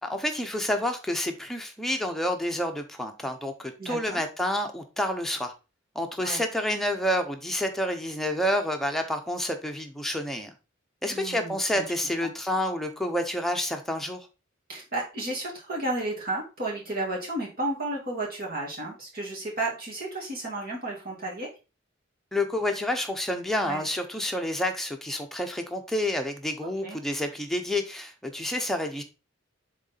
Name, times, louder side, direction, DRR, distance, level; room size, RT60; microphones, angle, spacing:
voice 1, 0.0-5.5 5.9-10.5 11.0-14.3 22.3-29.0, left 1 dB, ahead, 0.9 m, -29 dB
voice 2, 3.8-4.2 6.2-6.4 11.1-11.8 12.2-12.3 14.7-21.5 23.6-23.8 26.6-27.0, right 2 dB, 50° right, 2.4 m, -33 dB
7.0 x 3.8 x 4.1 m
head